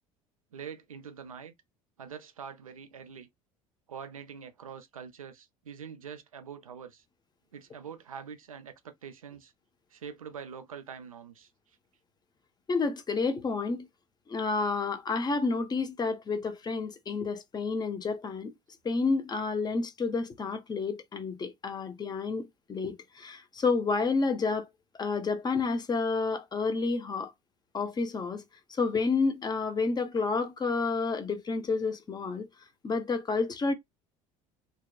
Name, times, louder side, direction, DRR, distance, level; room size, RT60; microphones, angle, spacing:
voice 1, 0.5-1.5 2.0-3.3 3.9-7.0 7.5-9.5 9.9-11.5, right 7 dB, 85° right, 0.4 m, -44 dB
voice 2, 12.7-13.9 14.3-18.5 18.8-24.7 24.9-27.3 27.7-28.4 28.7-32.5 32.8-33.7, left 4 dB, 25° left, 0.7 m, -30 dB
2.7 x 2.1 x 2.3 m
figure-of-eight pair, 65°, 17 cm